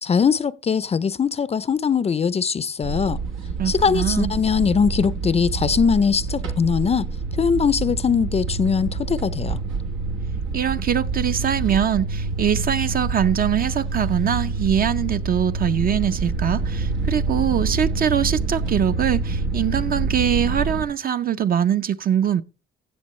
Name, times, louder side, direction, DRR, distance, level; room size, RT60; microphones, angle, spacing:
voice 1, 0.0-3.2 3.7-7.1 7.4-9.6, left 6 dB, 30° left, 0.4 m, -21 dB
sound 1, 2.8-20.8, right 3 dB, 90° right, 1.3 m, -27 dB
voice 2, 3.6-4.3 10.5-22.4, right 9 dB, 45° right, 0.6 m, -22 dB
16.0 x 6.7 x 3.1 m
cardioid pair, 90°, 20 cm